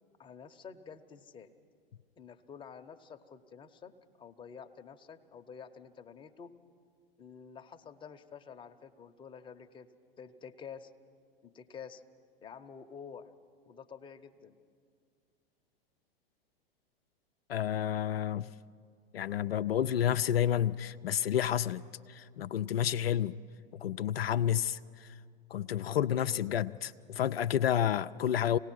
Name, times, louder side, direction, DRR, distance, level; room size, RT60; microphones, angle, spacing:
voice 1, 0.2-1.5 2.2-6.5 7.2-9.9 10.2-10.9 11.4-12.0 12.4-13.3 13.7-14.6, left 6 dB, 15° left, 5 dB, 0.8 m, -49 dB
voice 2, 17.5-18.5 19.1-21.8 22.1-23.4 23.7-25.2 25.5-28.6, left 10 dB, 75° left, 10 dB, 0.5 m, -30 dB
26.5 x 18.0 x 6.2 m, 2.2 s
figure-of-eight pair, 95°, 30 cm